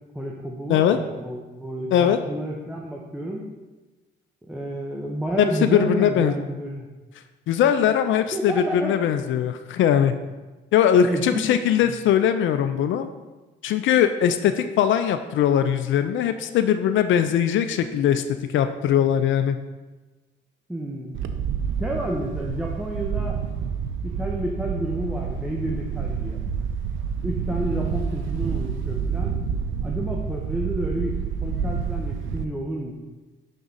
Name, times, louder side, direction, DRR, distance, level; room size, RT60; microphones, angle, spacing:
voice 1, 0.1-3.4 4.5-6.9 8.3-9.0 11.0-11.6 11.9-12.0 20.7-21.2 21.8-23.4 24.0-26.4 27.2-29.4 29.8-33.0, right 1 dB, 5° right, -1 dB, 0.8 m, -30 dB
voice 2, 5.4-6.4 7.5-10.1 10.7-13.1 13.6-19.6, left 9 dB, 75° left, 9 dB, 0.4 m, -20 dB
Wind, 21.1-32.5, right 6 dB, 80° right, 0.5 m, -28 dB
6.0 x 3.8 x 5.4 m, 1.2 s
cardioid pair, 90°, 20 cm